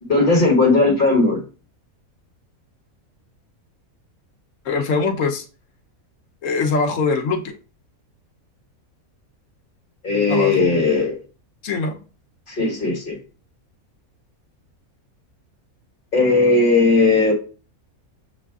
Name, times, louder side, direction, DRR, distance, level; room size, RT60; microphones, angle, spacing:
voice 1, 0.0-1.4 10.0-11.2 12.5-13.2 16.1-17.3, left 3 dB, 35° left, 0 dB, 1.6 m, -17 dB
voice 2, 4.6-5.5 6.4-7.5 10.3-10.8 11.6-12.0, left 4 dB, 65° left, 4 dB, 1.0 m, -22 dB
7.2 x 2.4 x 2.3 m, 0.35 s
omnidirectional pair, 1.5 m